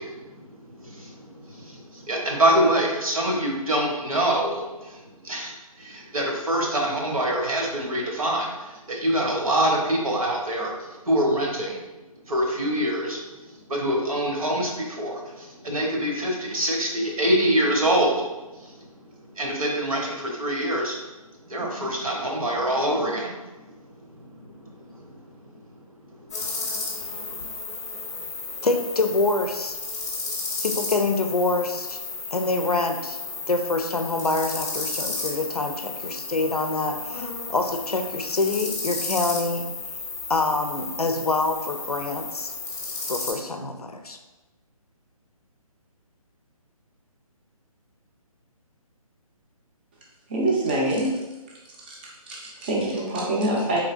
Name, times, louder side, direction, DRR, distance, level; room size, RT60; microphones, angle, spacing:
voice 1, 0.0-11.8 12.2-21.0 21.4-27.5, right 1 dB, 70° right, -1 dB, 1.0 m, -26 dB
sound 1, 26.3-43.3, left 4 dB, 25° left, 0.7 m, -33 dB
voice 2, 28.6-29.8 30.6-32.0 32.3-33.2 33.5-39.7 40.3-42.5 43.1-44.2, left 3 dB, 85° left, 5 dB, 0.5 m, -26 dB
voice 3, 50.3-51.2 51.9-52.0 52.3-53.8, right 1 dB, 15° right, -4 dB, 0.5 m, -25 dB
3.8 x 3.2 x 2.4 m, 1.1 s
figure-of-eight pair, 140°, 19 cm